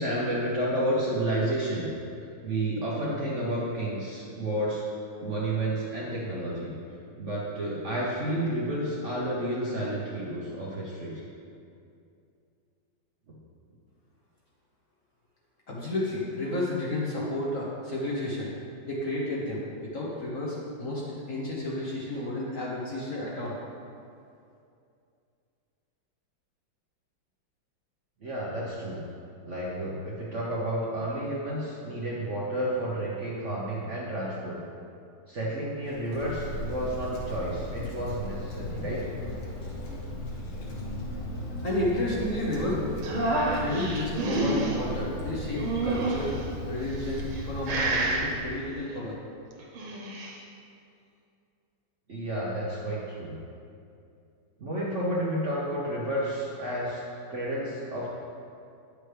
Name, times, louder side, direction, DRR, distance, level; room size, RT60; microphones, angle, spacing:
voice 1, 0.0-1.9 2.4-4.8 5.2-6.7 7.2-11.2 28.2-29.0 29.4-34.6 35.3-39.1 52.1-53.3 54.6-57.0 57.3-58.1, right 1 dB, 45° right, -6 dB, 1.0 m, -31 dB
voice 2, 15.7-18.5 18.8-19.6 19.9-21.0 21.3-23.5 41.6-42.9 43.6-46.3 46.6-49.1, left 1 dB, 50° left, -5 dB, 1.2 m, -31 dB
Wind, 35.8-48.6, left 1 dB, 65° left, 1.9 m, -38 dB
sound 1, 35.9-46.8, left 1 dB, 80° left, 1.8 m, -42 dB
sound 2, 43.0-44.8 45.6-46.4 47.1-47.4 47.7-48.3 49.6-50.3, right 2 dB, 85° right, 1.8 m, -28 dB
9.4 x 6.6 x 3.3 m, 2.5 s
omnidirectional pair, 2.2 m